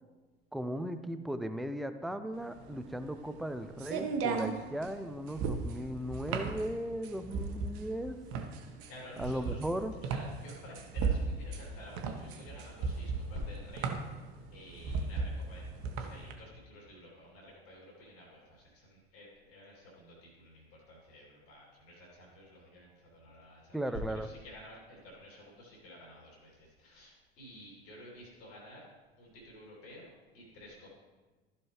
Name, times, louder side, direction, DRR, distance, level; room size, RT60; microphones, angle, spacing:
voice 1, 0.5-8.2 9.2-9.9 23.7-24.3, equal, ahead, 9 dB, 0.3 m, -37 dB
sound 1, 2.4-16.3, right 4 dB, 45° right, 1.1 m, -36 dB
voice 2, 8.4-9.6 10.0-15.7 16.0-28.9 29.2-30.1 30.3-30.9, left 1 dB, 45° left, -4 dB, 2.9 m, -51 dB
14.0 x 5.7 x 3.1 m, 1.3 s
figure-of-eight pair, 70°, 31 cm